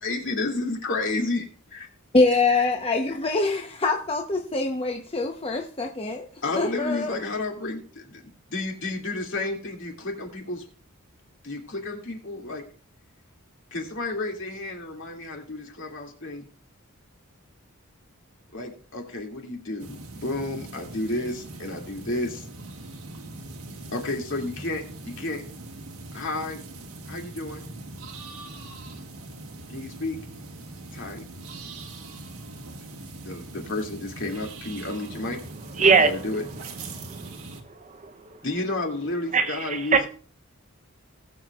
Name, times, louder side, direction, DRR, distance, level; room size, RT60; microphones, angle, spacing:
voice 1, 0.0-1.9 2.3-2.4 6.4-10.7 11.4-12.6 13.7-16.5 18.5-22.5 23.9-25.4 26.1-26.6 27.0-27.7 29.7-30.2 30.9-31.2 33.2-35.4 35.8-36.4 38.4-40.1, left 2 dB, 60° left, 2.5 m, -31 dB
voice 2, 2.1-6.2 6.6-7.1, left 3 dB, 25° left, 0.9 m, -24 dB
sound 1, 19.8-37.6, right 2 dB, 70° right, 1.6 m, -41 dB
voice 3, 35.8-36.1 37.1-37.3 37.9-38.0 39.3-39.6 39.9-40.1, right 4 dB, 35° right, 0.7 m, -19 dB
19.5 x 7.5 x 2.4 m
head